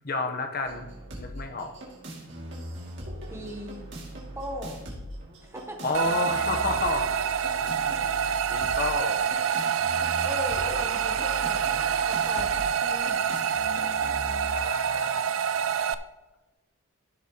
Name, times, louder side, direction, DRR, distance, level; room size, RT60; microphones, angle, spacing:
voice 1, 0.0-0.9 1.2-1.7 5.8-7.1 7.5-7.7 8.2-9.2 14.5-15.2, left 3 dB, 45° left, 5 dB, 1.0 m, -30 dB
sound 1, 0.7-14.7, equal, 60° right, 2.6 m, -40 dB
voice 2, 3.3-3.9 4.3-4.9 5.4-6.1 10.2-13.2, equal, 15° right, 3 dB, 0.9 m, -38 dB
sound 2, 5.9-15.9, right 7 dB, 85° right, 0.4 m, -27 dB
14.5 x 6.7 x 3.1 m, 1.1 s
head